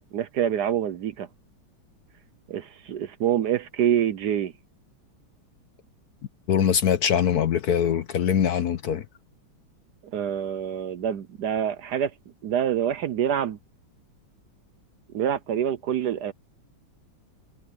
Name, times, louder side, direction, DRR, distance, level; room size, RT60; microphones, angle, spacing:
voice 1, 0.1-1.3 2.5-4.5 10.1-12.1 12.4-13.6 15.1-16.3, right 9 dB, 65° right, 1.2 m, -26 dB
voice 2, 6.5-9.0, left 8 dB, 60° left, 1.2 m, -22 dB
omnidirectional pair, 2.2 m